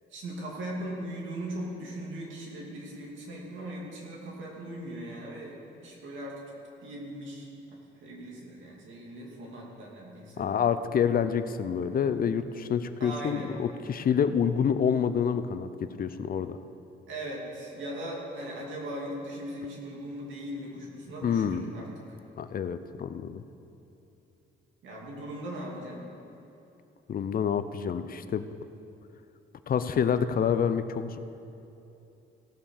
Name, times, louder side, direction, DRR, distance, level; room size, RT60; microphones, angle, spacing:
voice 1, 0.1-6.5 6.8-7.5 8.0-10.5 13.0-13.5 17.1-21.9 24.8-26.0, right 1 dB, 75° right, -2 dB, 2.6 m, -39 dB
voice 2, 10.4-15.7 16.0-16.6 21.2-21.6 22.4-23.4 27.1-28.5 29.7-31.2, left 7 dB, 45° left, 11 dB, 0.6 m, -27 dB
16.5 x 5.5 x 6.6 m, 2.9 s
cardioid pair, 90°, 20 cm